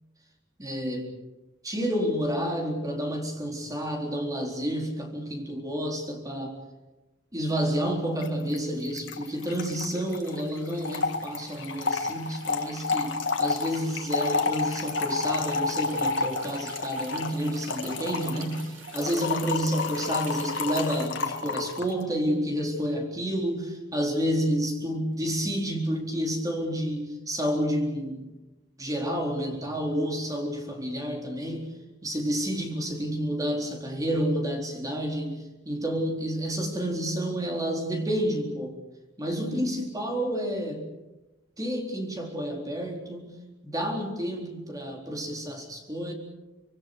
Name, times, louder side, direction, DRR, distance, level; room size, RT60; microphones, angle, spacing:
voice 1, 0.6-1.1 1.6-6.6 7.3-28.3 28.8-31.7 32.0-38.8 39.2-40.9 41.6-43.3 43.6-46.1, equal, 20° right, 2 dB, 4.1 m, -30 dB
Trickle dribble / Fill (with liquid), 8.2-8.3 8.5-8.6 8.8-21.9, left 4 dB, 70° left, 1.9 m, -30 dB
sound 1, 8.3-21.1, right 5 dB, 90° right, 4.1 m, -49 dB
25.5 x 23.0 x 6.8 m, 1.1 s
head